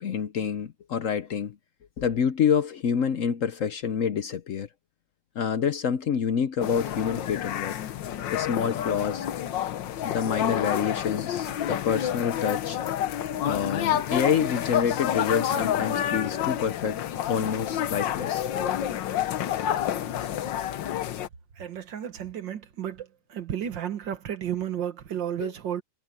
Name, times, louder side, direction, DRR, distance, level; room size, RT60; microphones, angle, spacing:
voice 1, 0.0-1.6 2.0-4.7 5.3-7.8 8.3-9.2 10.0-12.8 13.4-17.0 17.3-18.5 25.4-25.5, left 7 dB, 60° left, 0.9 m, -27 dB
sound 1, 6.6-21.3, left 10 dB, 85° left, 1.6 m, -29 dB
voice 2, 21.6-23.1 23.3-25.8, right 9 dB, 85° right, 2.1 m, -32 dB
omnidirectional pair, 1.9 m